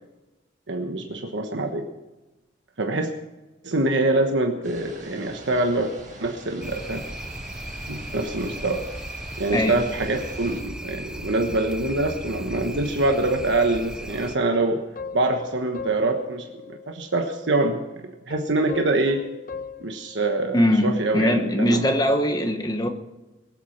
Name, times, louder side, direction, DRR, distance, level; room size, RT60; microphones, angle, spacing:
voice 1, 0.7-1.9 2.8-3.1 3.6-5.9 6.2-7.0 7.9-8.8 9.4-14.8 15.1-19.2 19.8-21.9, right 2 dB, 75° right, 4 dB, 1.3 m, -25 dB
sound 1, 4.6-10.6, right 2 dB, 45° right, 4.5 m, -44 dB
sound 2, 6.6-14.4, equal, 5° right, 0.6 m, -36 dB
voice 2, 9.5-9.8 20.5-22.9, equal, 20° left, 6 dB, 1.2 m, -21 dB
sound 3, 11.8-13.4 14.5-17.1 17.5-17.7 18.3-20.8 21.2-21.3, left 4 dB, 45° left, 1.1 m, -40 dB
21.5 x 8.3 x 6.0 m, 1.1 s
head